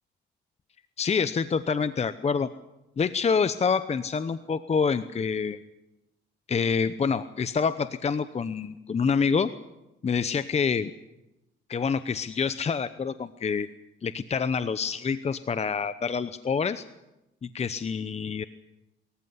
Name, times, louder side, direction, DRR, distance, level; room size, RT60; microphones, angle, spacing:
voice 1, 1.0-2.5 3.0-5.6 6.5-9.5 10.0-10.9 11.7-13.7 14.0-16.8 17.4-18.4, left 5 dB, 35° left, 13 dB, 0.8 m, -27 dB
24.0 x 14.5 x 9.6 m, 0.96 s
cardioid pair, 90°, 20 cm